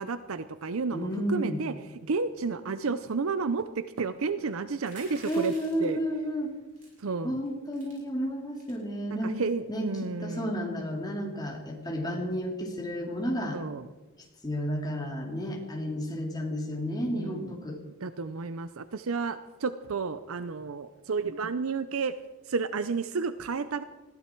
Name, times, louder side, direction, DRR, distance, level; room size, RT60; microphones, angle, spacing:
voice 1, 0.0-1.7 2.1-5.5 5.8-6.0 7.0-7.4 9.2-10.6 13.5-13.9 17.0-17.6 18.0-22.2 22.5-23.8, right 4 dB, 75° right, 12 dB, 0.6 m, -31 dB
voice 2, 0.9-1.6 5.3-6.5 7.2-9.4 9.7-13.6 14.4-17.8, equal, 20° left, 0 dB, 2.9 m, -32 dB
sound 1, 4.8-6.0 6.8-7.0 7.4-7.5 7.7-8.0 8.5-8.8, right 2 dB, 40° right, 6.5 m, -49 dB
20.5 x 15.0 x 4.6 m, 1.2 s
head